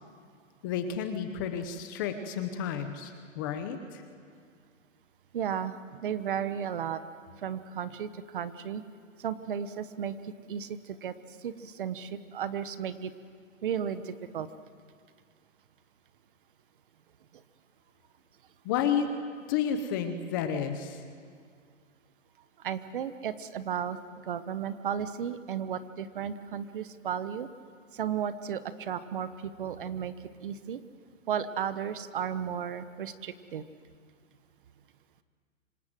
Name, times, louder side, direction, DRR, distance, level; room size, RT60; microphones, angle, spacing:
voice 1, 0.6-4.0 18.6-19.1 19.5-21.0, left 8 dB, 15° left, 8 dB, 0.8 m, -31 dB
voice 2, 5.3-7.0 7.4-8.8 9.2-11.1 11.4-13.1 13.6-14.5 22.6-24.0 24.3-27.5 27.9-30.1 30.4-30.8 31.3-33.6, right 8 dB, 40° right, 13 dB, 1.1 m, -34 dB
26.5 x 26.0 x 7.6 m, 2.1 s
hypercardioid pair, 165°, 39 cm